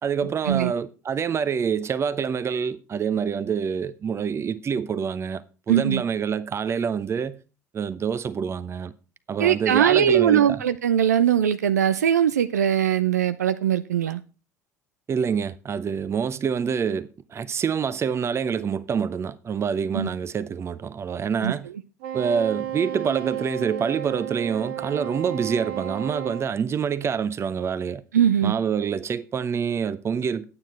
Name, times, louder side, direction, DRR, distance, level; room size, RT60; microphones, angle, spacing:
voice 1, 0.0-7.4 7.7-8.9 9.3-10.6 15.1-21.7 22.1-28.0 28.4-30.4, right 7 dB, 30° right, 0.8 m, -26 dB
voice 2, 5.7-6.0 9.4-14.2 19.9-20.1 21.4-21.5 28.1-28.5, right 9 dB, 75° right, 0.5 m, -21 dB
Wind instrument woodwind instrument, 22.0-26.5, right 10 dB, 55° right, 1.8 m, -33 dB
11.5 x 9.1 x 4.3 m
figure-of-eight pair, 60°, 9 cm